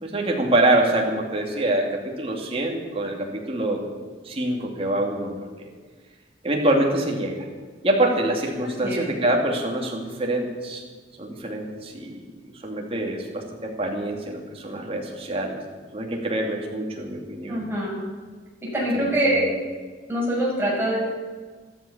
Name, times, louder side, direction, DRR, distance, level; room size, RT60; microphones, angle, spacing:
voice 1, 0.0-3.8 4.2-5.3 5.6-5.7 6.4-7.5 7.8-10.8 11.2-15.6 15.9-17.6 18.9-19.5, right 1 dB, 30° right, 0 dB, 2.7 m, -25 dB
voice 2, 17.5-18.0 18.6-19.4 20.1-21.0, right 1 dB, 10° right, -6 dB, 6.5 m, -24 dB
13.5 x 13.5 x 7.3 m, 1.5 s
head